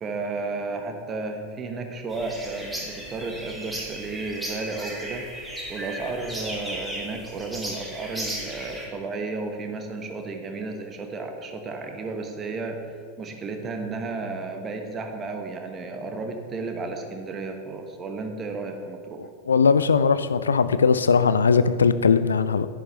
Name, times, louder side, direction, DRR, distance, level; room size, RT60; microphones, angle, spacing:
voice 1, 0.0-5.2 5.7-19.2, right 3 dB, 25° right, 4 dB, 1.1 m, -33 dB
sound 1, 2.1-8.9, right 1 dB, 5° right, 1.9 m, -36 dB
voice 2, 19.2-22.7, left 5 dB, 70° left, 13 dB, 0.3 m, -20 dB
10.5 x 9.5 x 3.1 m, 2.1 s
figure-of-eight pair, 90°, 0 cm